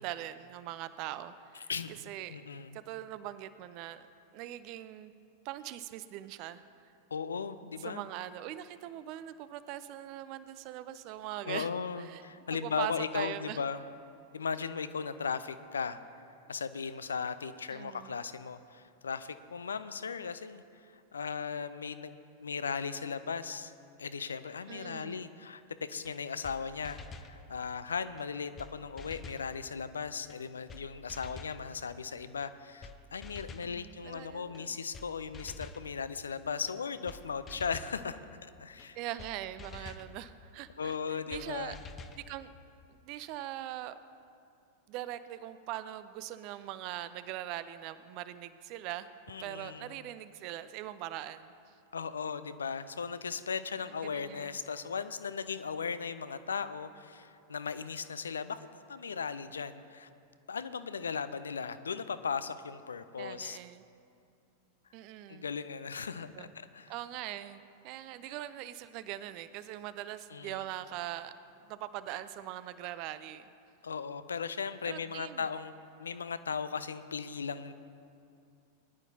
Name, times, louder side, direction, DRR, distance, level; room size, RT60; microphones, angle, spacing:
voice 1, 0.0-2.4 2.7-4.1 4.3-5.1 5.4-6.6 7.6-11.7 12.0-12.2 12.5-13.6 17.7-18.2 24.7-25.2 33.6-34.8 38.9-41.8 42.2-42.5 42.9-44.0 44.9-49.1 49.4-51.5 53.9-54.6 63.2-63.8 64.9-65.5 66.3-66.5 66.9-71.3 71.6-73.5 74.8-75.5, right 13 dB, 45° right, 14 dB, 0.5 m, -41 dB
voice 2, 2.3-2.8 7.1-8.0 11.5-13.8 14.3-16.0 16.5-20.6 21.1-23.7 24.0-27.0 27.3-38.2 38.6-39.0 39.8-39.9 40.8-41.8 49.3-49.9 51.9-60.1 60.5-63.6 65.3-66.9 70.3-70.6 73.8-75.7 76.0-77.7, left 6 dB, 70° left, 13 dB, 0.5 m, -37 dB
sound 1, 26.0-26.1 26.4-26.6 26.8-27.3 28.2-28.3 28.6-28.7 29.0-29.5 30.3-30.4 30.7-30.8 31.1-31.6 32.4-32.5 32.8-33.0 33.2-33.7 34.5-34.6 34.9-35.1 35.3-35.8 36.7-36.8 37.1-37.2 37.5-38.0 38.8-38.9 39.2-39.3 39.6-40.1 40.9-41.0 41.3-41.4 41.7-42.2, left 3 dB, 25° left, 0.7 m, -47 dB
20.5 x 11.0 x 2.8 m, 2.5 s
figure-of-eight pair, 90°, 0 cm